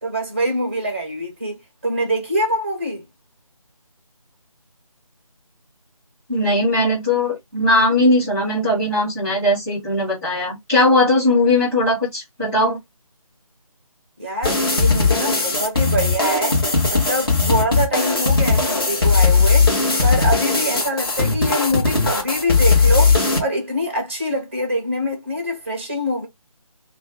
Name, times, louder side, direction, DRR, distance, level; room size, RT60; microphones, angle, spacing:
voice 1, 0.0-3.0 14.2-16.6 16.9-19.7 20.0-26.3, equal, 20° right, 0.6 m, -24 dB
voice 2, 6.3-12.8, left 1 dB, 5° left, 1.1 m, -19 dB
sound 1, 14.4-23.4, left 4 dB, 40° left, 1.1 m, -18 dB
2.5 x 2.2 x 3.6 m
figure-of-eight pair, 160°, 19 cm